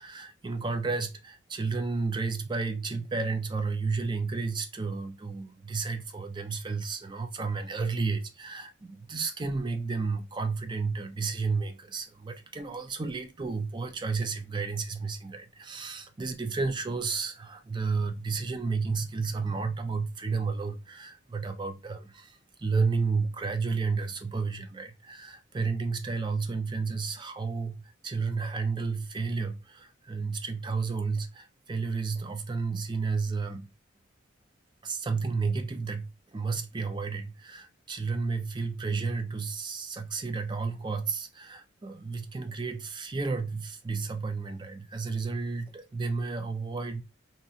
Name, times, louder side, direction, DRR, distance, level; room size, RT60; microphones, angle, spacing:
voice 1, 0.0-33.7 34.8-47.0, right 4 dB, 20° right, 0.3 m, -32 dB
2.8 x 2.4 x 2.6 m
head